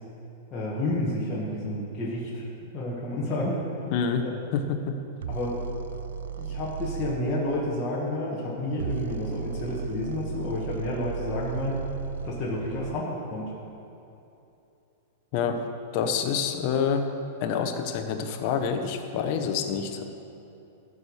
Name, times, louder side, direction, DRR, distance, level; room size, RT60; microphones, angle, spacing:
voice 1, 0.5-2.4 2.7-3.6 4.2-4.4 5.3-5.6 6.4-11.8 12.2-13.5, left 1 dB, 20° left, -7 dB, 1.6 m, -30 dB
voice 2, 3.9-4.3 4.5-4.9 15.3-15.6 15.9-17.1 17.4-20.0, left 6 dB, 40° left, 5 dB, 0.9 m, -27 dB
sound 1, 5.2-7.2 8.7-13.0, right 7 dB, 85° right, 0.3 m, -35 dB
13.5 x 4.9 x 7.1 m, 2.8 s
supercardioid pair, 160°, 0 cm